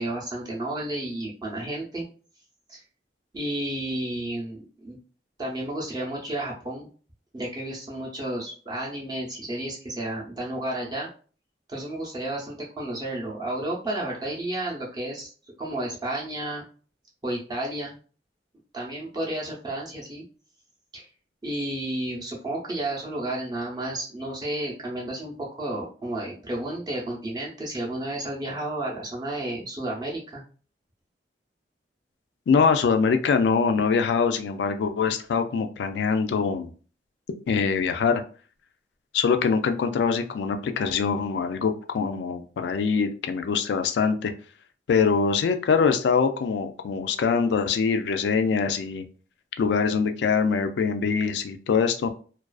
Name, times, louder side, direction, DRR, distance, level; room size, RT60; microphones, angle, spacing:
voice 1, 0.0-2.0 2.7-2.8 3.3-5.0 5.4-6.9 7.3-11.1 11.7-15.3 15.6-16.6 17.2-18.0 18.7-20.2 20.9-21.1 21.4-30.4, right 1 dB, 25° right, -3 dB, 0.5 m, -32 dB
voice 2, 32.5-36.7 37.5-38.2 39.1-44.3 44.9-49.0 49.6-52.1, left 5 dB, 70° left, 8 dB, 0.3 m, -23 dB
2.3 x 2.2 x 2.3 m, 0.40 s
head